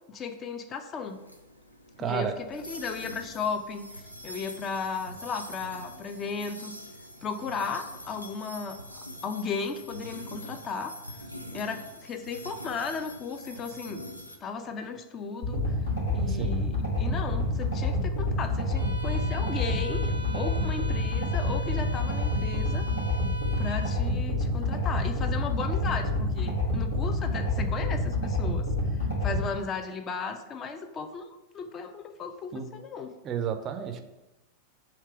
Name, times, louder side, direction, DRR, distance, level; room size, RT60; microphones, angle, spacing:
voice 1, 0.1-1.2 2.0-6.8 7.2-10.9 11.5-14.0 14.4-15.7 16.1-22.9 23.6-31.3 31.5-33.1, left 5 dB, 30° left, 7 dB, 0.5 m, -35 dB
sound 1, 1.0-14.4, equal, 90° left, 0.4 m, -44 dB
voice 2, 2.0-2.3 16.2-16.6 32.5-32.7 33.2-34.0, right 7 dB, 30° right, 7 dB, 0.4 m, -31 dB
sound 2, 15.4-29.4, left 1 dB, 75° left, 1.5 m, -28 dB
Bowed string instrument, 18.7-24.0, right 1 dB, 85° right, 0.5 m, -42 dB
3.3 x 2.9 x 4.7 m, 0.99 s
figure-of-eight pair, 90°, 0 cm